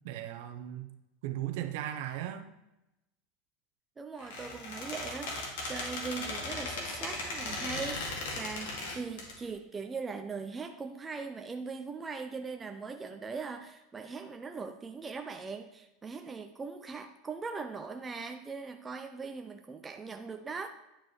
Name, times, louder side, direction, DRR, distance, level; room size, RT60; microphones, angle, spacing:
voice 1, 0.0-0.9 1.2-2.5, right 12 dB, 55° right, 7 dB, 0.7 m, -37 dB
voice 2, 4.0-20.7, right 4 dB, 10° right, 5 dB, 0.3 m, -40 dB
Squeak, 4.2-9.3, left 2 dB, 80° left, 2.0 m, -37 dB
10.0 x 5.1 x 3.1 m, 0.93 s
supercardioid pair, 175°, 0 cm